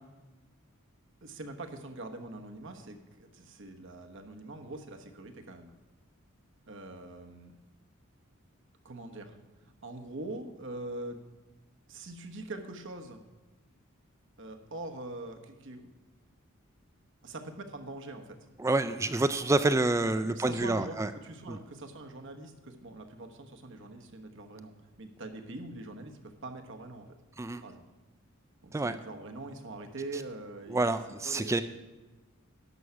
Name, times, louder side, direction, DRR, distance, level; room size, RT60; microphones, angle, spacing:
voice 1, 1.2-5.7 6.7-7.5 8.8-9.4 9.6-11.2 11.9-13.2 14.4-15.9 17.2-18.4 20.2-24.7 25.0-27.1 27.6-27.8 28.6-31.0 31.2-31.6, right 2 dB, 60° right, 6 dB, 1.2 m, -43 dB
voice 2, 18.6-21.1 21.5-21.6 27.4-27.6 28.7-28.9 30.7-31.6, right 2 dB, 15° right, 11 dB, 0.3 m, -28 dB
11.0 x 6.4 x 7.0 m, 1.2 s
head